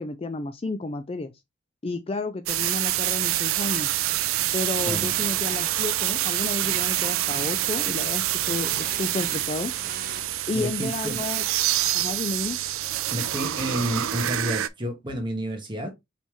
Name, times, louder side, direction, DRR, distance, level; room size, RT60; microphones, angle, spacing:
voice 1, 0.0-1.3 1.8-3.9 4.5-9.7 10.5-11.4 11.9-12.6, left 3 dB, 25° left, 0.3 m, -31 dB
sound 1, 2.5-14.7, right 14 dB, 85° right, 0.4 m, -26 dB
sound 2, 3.5-10.2, right 5 dB, 45° right, 0.9 m, -41 dB
voice 2, 10.5-11.2 13.1-15.9, equal, 25° right, 1.3 m, -30 dB
5.3 x 3.3 x 3.0 m
head